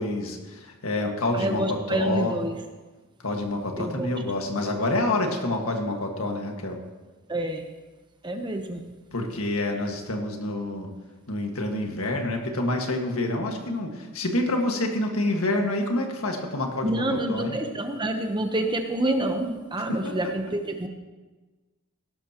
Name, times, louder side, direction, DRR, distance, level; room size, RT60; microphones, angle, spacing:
voice 1, 0.0-2.4 3.2-6.8 9.1-10.9 11.3-17.6 19.9-20.3, left 1 dB, 70° left, 2 dB, 1.7 m, -27 dB
voice 2, 1.3-2.6 3.8-4.1 7.3-7.6 8.2-8.8 16.8-20.9, right 1 dB, 20° right, 5 dB, 0.9 m, -27 dB
16.5 x 12.5 x 3.0 m, 1.2 s
head